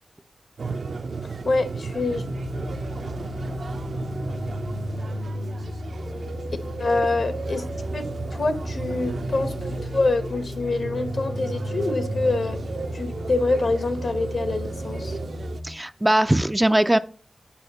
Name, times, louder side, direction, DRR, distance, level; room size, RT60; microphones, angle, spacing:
sound 1, 0.6-15.6, right 4 dB, 60° right, 0.6 m, -34 dB
voice 1, 1.2-2.2 6.8-7.6 7.9-8.1 8.3-12.6 12.9-15.2, left 3 dB, 60° left, 1.1 m, -25 dB
sound 2, 2.0-15.7, left 1 dB, 90° left, 1.7 m, -34 dB
voice 2, 15.6-17.0, right 1 dB, 15° right, 0.4 m, -20 dB
8.6 x 5.7 x 4.1 m
wide cardioid pair, 110°, 0 cm